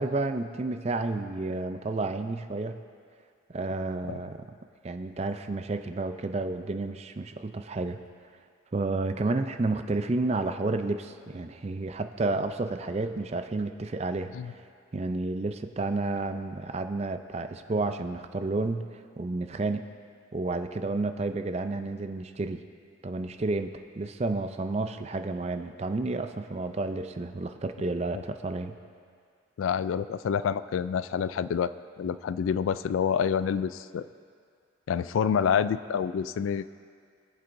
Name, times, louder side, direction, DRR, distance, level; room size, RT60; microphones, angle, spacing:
voice 1, 0.0-2.8 3.5-4.4 4.8-8.0 8.7-14.3 14.9-18.9 19.2-19.8 20.3-22.6 23.0-28.7, right 2 dB, 30° right, 8 dB, 0.4 m, -31 dB
voice 2, 29.6-31.7 32.0-34.0 34.9-36.7, left 7 dB, 75° left, 14 dB, 0.3 m, -27 dB
21.5 x 7.5 x 2.6 m, 2.2 s
head